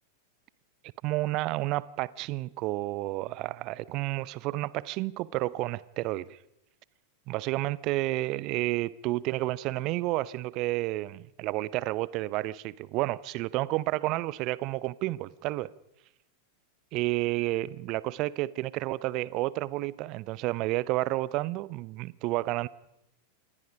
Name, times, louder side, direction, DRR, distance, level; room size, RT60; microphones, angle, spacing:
voice 1, 1.0-6.4 7.3-15.7 16.9-22.7, right 18 dB, 40° right, 0.7 m, -30 dB
27.0 x 21.0 x 5.1 m
figure-of-eight pair, 90°, 0 cm